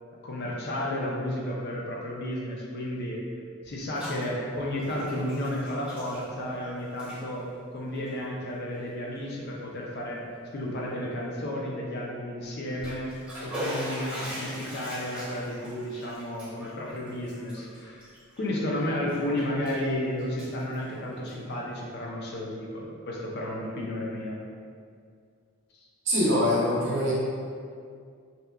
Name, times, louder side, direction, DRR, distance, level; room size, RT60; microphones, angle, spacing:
voice 1, 0.2-3.2 3.6-7.4 7.7-10.2 10.5-13.1 13.4-18.1 18.4-24.4, left 1 dB, 50° left, -3 dB, 0.4 m, -32 dB
Bathtub (filling or washing), 3.6-4.2 4.5-6.6 6.9-7.2 7.9-8.1 8.7-8.8 9.3-9.4 12.5-18.7 19.1-19.9 20.2-21.5, equal, 5° right, 0.6 m, -40 dB
voice 2, 26.1-27.1, left 1 dB, 55° right, -6 dB, 0.6 m, -23 dB
2.7 x 2.2 x 2.3 m, 2.2 s
head